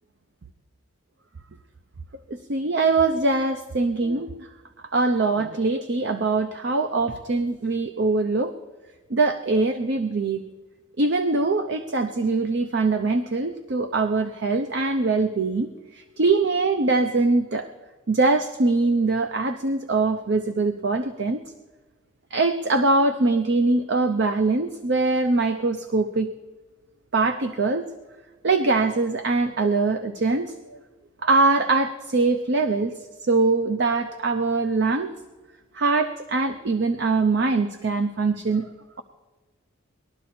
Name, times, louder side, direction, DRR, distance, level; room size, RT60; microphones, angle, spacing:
voice 1, 2.3-4.5 4.9-8.5 9.1-10.4 11.0-17.7 18.1-21.4 22.3-26.3 27.1-27.9 28.4-30.8 31.2-35.1 35.7-38.7, right 3 dB, 55° right, 8 dB, 0.6 m, -23 dB
20.0 x 12.0 x 4.3 m, 1.2 s
head